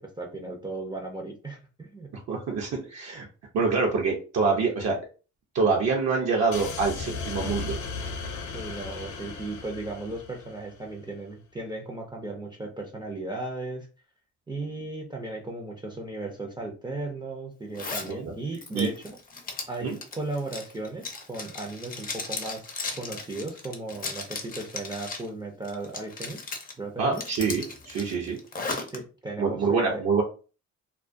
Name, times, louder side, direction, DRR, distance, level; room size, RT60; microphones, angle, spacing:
voice 1, 0.2-2.1 8.5-13.9 14.5-19.2 19.7-22.7 23.0-26.5 26.8-27.2 28.9-30.0, right 2 dB, 15° right, 1 dB, 0.4 m, -36 dB
voice 2, 2.3-3.2 3.5-5.0 5.5-7.8 18.1-18.3 18.7-18.9 19.8-20.0 27.0-28.4 29.4-30.2, right 4 dB, 60° right, -1 dB, 0.6 m, -26 dB
sound 1, 6.5-10.9, left 4 dB, 70° left, 0.6 m, -36 dB
Zipper (clothing), 17.7-18.1 18.5-25.3 25.6-26.7 27.1-29.0, left 3 dB, 30° left, 0.6 m, -36 dB
2.3 x 2.1 x 2.5 m, 0.35 s
cardioid pair, 90°, 30 cm